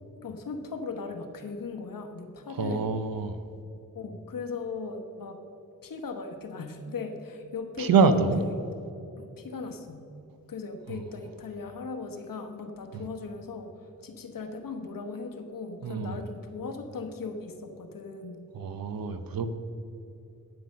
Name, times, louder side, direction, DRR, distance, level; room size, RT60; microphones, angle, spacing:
voice 1, 0.2-2.9 3.9-5.4 5.8-8.7 9.2-10.0 10.5-18.4, left 4 dB, 75° left, 6 dB, 1.1 m, -38 dB
voice 2, 2.5-3.4 7.8-8.4 10.9-11.0 12.9-13.0 15.8-16.2 18.5-19.5, right 5 dB, 85° right, 11 dB, 0.8 m, -25 dB
9.7 x 7.9 x 6.5 m, 2.8 s
cardioid pair, 70°, 34 cm